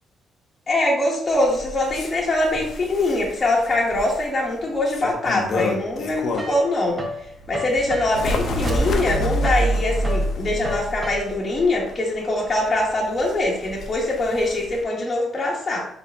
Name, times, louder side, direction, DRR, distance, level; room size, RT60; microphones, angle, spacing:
voice 1, 0.7-7.0 7.5-15.9, left 2 dB, 30° left, -3 dB, 1.2 m, -23 dB
Bird, 1.3-6.7 7.2-14.8, left 3 dB, 60° left, 0.8 m, -32 dB
sound 1, 5.6-7.2 7.5-11.6, left 1 dB, 20° right, 1.0 m, -34 dB
sound 2, 7.4-11.6, right 1 dB, 45° right, 0.4 m, -26 dB
4.4 x 3.4 x 3.5 m, 0.70 s
cardioid pair, 90°, 0 cm